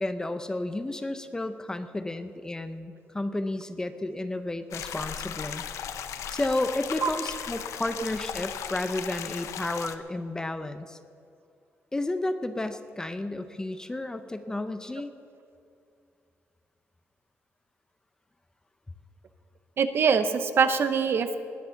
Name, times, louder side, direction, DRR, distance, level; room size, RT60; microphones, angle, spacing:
voice 1, 0.0-5.6 6.3-11.0 11.9-15.1, left 2 dB, 15° left, 10 dB, 0.6 m, -32 dB
sound 1, 4.7-10.0, left 8 dB, 80° left, 0.8 m, -36 dB
voice 2, 19.8-21.4, right 6 dB, 50° right, 10 dB, 0.8 m, -23 dB
19.5 x 9.7 x 5.8 m, 2.4 s
wide cardioid pair, 155°, 5 cm